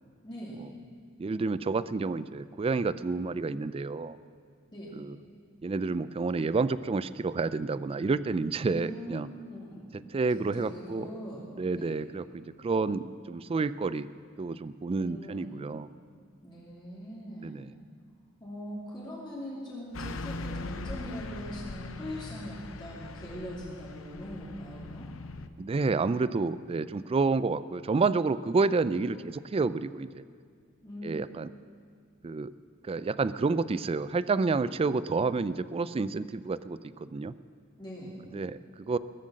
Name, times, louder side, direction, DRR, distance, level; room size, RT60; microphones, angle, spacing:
voice 1, 0.2-0.7 4.7-5.0 8.7-9.9 10.3-11.4 11.8-12.0 14.9-15.6 16.4-17.7 18.4-25.1 30.8-31.1 37.8-38.2, equal, 20° left, -7 dB, 2.8 m, -41 dB
voice 2, 1.2-4.2 4.9-5.2 5.6-9.3 10.1-11.1 11.5-14.1 14.4-15.9 17.4-17.7 25.6-30.2 31.0-31.5 32.2-32.5 32.8-37.3 38.3-39.0, right 4 dB, 30° right, 15 dB, 0.3 m, -29 dB
Car passing by / Truck, 19.9-25.5, left 2 dB, 75° left, 0.7 m, -40 dB
20.5 x 7.8 x 7.5 m, 2.1 s
head